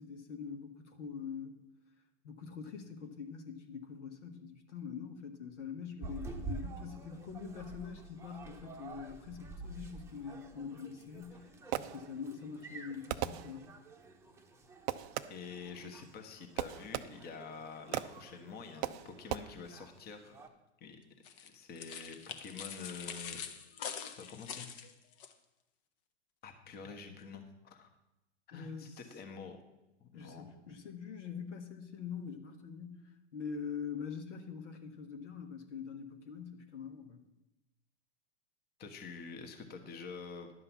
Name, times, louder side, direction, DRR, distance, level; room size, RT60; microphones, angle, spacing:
voice 1, 0.0-1.6 2.2-11.5 11.8-13.7 28.5-29.0 30.1-37.3, left 6 dB, 75° left, 5 dB, 1.6 m, -44 dB
sound 1, 6.0-20.5, right 3 dB, 10° right, 1.0 m, -49 dB
Fireworks, 11.2-12.4 13.1-14.0 14.9-15.6 16.6-17.5 17.9-18.4 18.8-19.4, right 14 dB, 35° right, 0.5 m, -39 dB
voice 2, 15.3-20.4 20.8-21.0 21.4-23.4 24.1-24.7 26.4-27.9 28.5-29.6 30.0-30.5 38.8-40.5, left 5 dB, 25° left, 6 dB, 1.3 m, -47 dB
sound 2, 21.2-25.3, left 7 dB, 50° left, 1.1 m, -44 dB
11.0 x 5.5 x 7.0 m, 0.96 s
hypercardioid pair, 105°, 36 cm